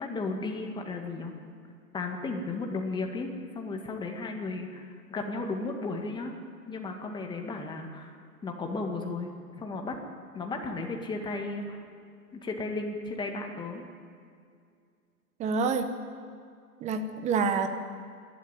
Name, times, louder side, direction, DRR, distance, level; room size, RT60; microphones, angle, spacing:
voice 1, 0.0-1.3 1.9-6.3 6.7-8.1 8.4-9.3 9.6-10.0 10.3-11.8 12.4-13.9, left 3 dB, 10° left, 2 dB, 1.9 m, -34 dB
voice 2, 15.4-15.9 16.8-17.7, right 5 dB, 15° right, 8 dB, 1.1 m, -27 dB
27.0 x 12.0 x 9.1 m, 2.3 s
hypercardioid pair, 135°, 47 cm